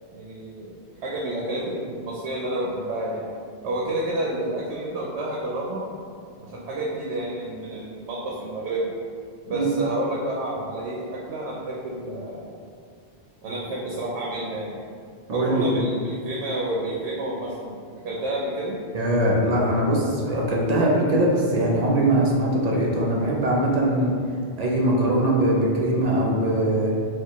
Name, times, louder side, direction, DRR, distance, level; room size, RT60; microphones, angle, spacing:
voice 1, 0.1-3.3 3.6-5.9 6.4-8.9 9.4-12.5 13.4-14.8 15.3-17.8 18.0-18.8, right 1 dB, 85° right, -4 dB, 0.9 m, -30 dB
voice 2, 15.3-15.8 18.9-24.1 24.6-26.9, right 1 dB, 50° right, -3 dB, 0.5 m, -21 dB
4.3 x 2.3 x 2.9 m, 2.2 s
omnidirectional pair, 1.1 m